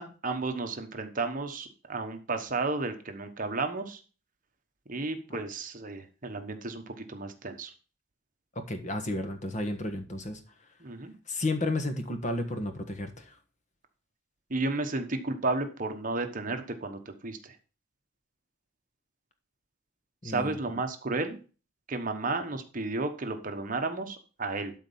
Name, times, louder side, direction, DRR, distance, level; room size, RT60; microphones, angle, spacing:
voice 1, 0.0-4.0 4.9-7.7 10.8-11.1 14.5-17.5 20.2-21.4 21.9-24.7, right 3 dB, 40° right, 6 dB, 1.1 m, -33 dB
voice 2, 8.5-10.4 11.3-13.4 20.2-20.6, left 2 dB, 35° left, 7 dB, 1.4 m, -32 dB
12.0 x 4.2 x 5.5 m, 0.36 s
head